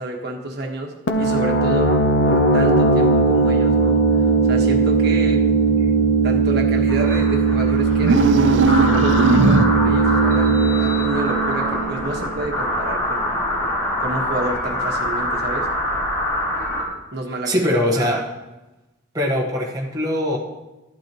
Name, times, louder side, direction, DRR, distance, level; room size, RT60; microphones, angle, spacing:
voice 1, 0.0-1.9 2.2-5.4 6.2-13.4 14.0-15.7 17.1-17.5 17.9-18.2, right 2 dB, 50° right, 0 dB, 1.4 m, -29 dB
sound 1, 1.1-12.6, right 4 dB, 60° left, 0.8 m, -18 dB
sound 2, 6.9-16.8, left 1 dB, 15° left, 4.5 m, -25 dB
sound 3, 8.0-10.0, right 3 dB, 70° right, 0.6 m, -18 dB
voice 2, 17.4-18.3 19.1-20.4, left 1 dB, 20° right, -3 dB, 1.3 m, -22 dB
13.0 x 11.5 x 3.0 m, 1.0 s
head